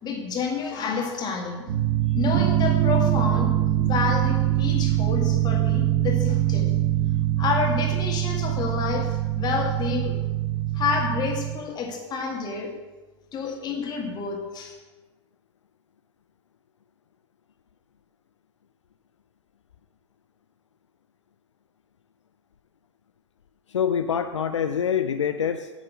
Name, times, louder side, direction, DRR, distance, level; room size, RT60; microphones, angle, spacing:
voice 1, 0.0-1.6 2.1-6.7 7.4-10.2 10.7-12.8 13.3-14.8, left 5 dB, 25° left, 2 dB, 1.9 m, -29 dB
sound 1, 1.7-11.6, right 13 dB, 50° right, 1.1 m, -23 dB
voice 2, 23.7-25.7, left 8 dB, 75° left, 9 dB, 0.5 m, -25 dB
9.0 x 6.2 x 6.3 m, 1.2 s
figure-of-eight pair, 95°, 16 cm